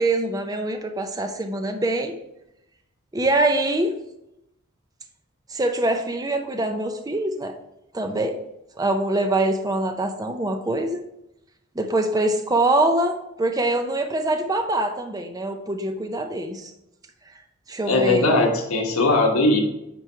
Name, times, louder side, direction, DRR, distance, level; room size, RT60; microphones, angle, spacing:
voice 1, 0.0-2.1 3.1-3.9 5.5-7.5 7.9-8.4 8.8-11.0 11.8-16.7 17.7-18.4, right 2 dB, 15° right, 5 dB, 0.5 m, -24 dB
voice 2, 17.9-19.6, left 2 dB, 85° left, 1 dB, 1.3 m, -19 dB
9.0 x 3.1 x 4.5 m, 0.84 s
head